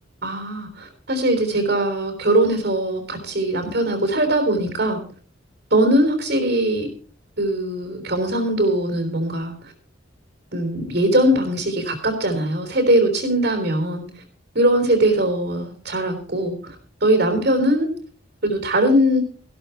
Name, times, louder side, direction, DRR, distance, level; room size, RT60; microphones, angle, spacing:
voice 1, 0.2-5.0 5.7-6.9 7.4-9.5 10.5-14.0 14.5-16.8 17.0-17.9 18.4-19.2, right 1 dB, 55° right, 4 dB, 3.8 m, -20 dB
15.0 x 13.0 x 4.5 m, 0.42 s
head